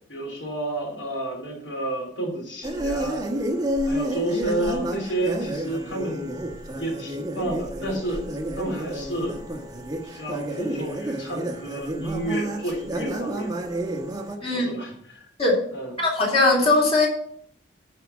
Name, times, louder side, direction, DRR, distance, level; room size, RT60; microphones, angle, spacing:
voice 1, 0.1-3.2 3.8-6.3 6.8-8.2 8.5-9.5 10.0-13.5 14.4-15.3 15.7-15.9, right 1 dB, 70° left, 0 dB, 3.9 m, -30 dB
sound 1, 2.6-14.4, right 1 dB, 20° right, 1.1 m, -30 dB
voice 2, 16.0-17.1, left 2 dB, 30° left, -2 dB, 3.1 m, -19 dB
11.0 x 4.9 x 7.2 m, 0.65 s
head